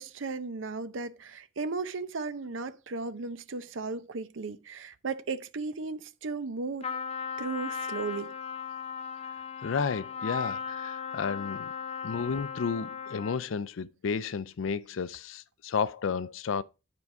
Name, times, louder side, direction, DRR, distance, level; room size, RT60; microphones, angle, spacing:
voice 1, 0.0-6.9 7.4-8.3, right 4 dB, 75° right, 0.7 m, -35 dB
Trumpet, 6.8-13.5, left 6 dB, 30° left, 0.6 m, -37 dB
voice 2, 9.6-11.7 12.0-16.6, left 5 dB, 80° left, 0.4 m, -32 dB
9.6 x 4.6 x 4.7 m
head